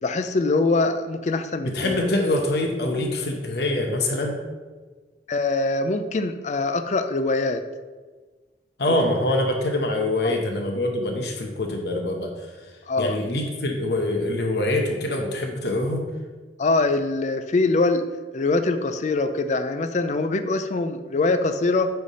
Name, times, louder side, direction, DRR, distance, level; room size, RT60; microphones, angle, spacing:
voice 1, 0.0-2.0 5.3-7.6 8.9-9.0 10.2-10.4 12.9-13.2 16.6-18.0 18.3-21.9, left 3 dB, 40° left, 9 dB, 0.4 m, -23 dB
voice 2, 1.6-4.3 8.8-12.3 13.0-16.0, left 1 dB, 65° left, 2 dB, 0.9 m, -24 dB
9.1 x 3.4 x 4.2 m, 1.4 s
head